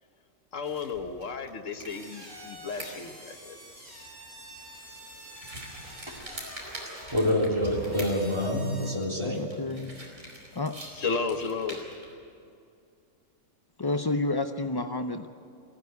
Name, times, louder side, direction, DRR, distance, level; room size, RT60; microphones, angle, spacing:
voice 1, 0.5-3.6 10.9-11.8, left 4 dB, 75° left, 6 dB, 1.6 m, -33 dB
sound 1, 0.6-12.1, right 1 dB, 85° right, 4.9 m, -47 dB
sound 2, 1.9-8.9, equal, 45° right, 7.2 m, -45 dB
voice 2, 7.1-9.4, left 1 dB, 20° right, -2 dB, 3.5 m, -27 dB
voice 3, 9.2-11.0 13.8-15.3, left 2 dB, 40° left, 7 dB, 0.3 m, -31 dB
23.5 x 16.0 x 9.5 m, 2.5 s
omnidirectional pair, 1.3 m